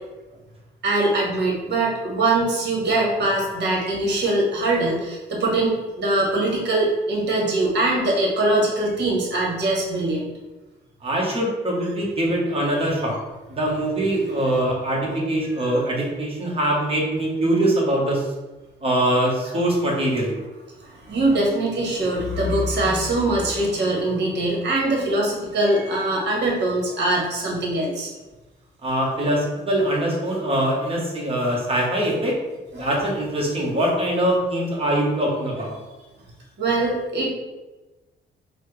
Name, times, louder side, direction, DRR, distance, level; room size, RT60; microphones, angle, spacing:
voice 1, 0.8-10.3 15.6-15.7 20.8-28.1 32.8-32.9 36.6-37.3, right 2 dB, 60° right, -2 dB, 1.2 m, -22 dB
voice 2, 11.0-13.2 13.5-18.3 18.8-20.3 28.8-32.3 32.7-35.7, right 1 dB, 30° right, -3 dB, 1.2 m, -23 dB
4.3 x 2.2 x 3.3 m, 1.1 s
cardioid pair, 90°, 20 cm